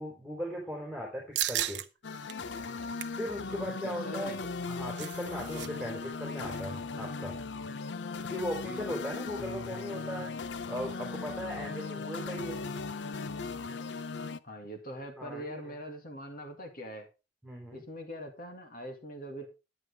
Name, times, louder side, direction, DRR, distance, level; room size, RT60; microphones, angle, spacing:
voice 1, 0.0-1.8 3.2-7.3 8.2-10.3 10.7-12.6 15.2-15.8 17.4-17.8, equal, ahead, 3.8 m, -38 dB
sound 1, 1.4-1.9 2.3-2.4 2.8-3.2 4.5-5.7 5.9-6.1 6.4-6.7, right 12 dB, 75° right, 0.8 m, -35 dB
sound 2, 2.0-14.4, left 4 dB, 80° left, 0.6 m, -38 dB
voice 2, 4.0-4.4 14.4-17.1 17.7-19.5, equal, 55° left, 2.3 m, -42 dB
11.0 x 9.3 x 3.4 m
head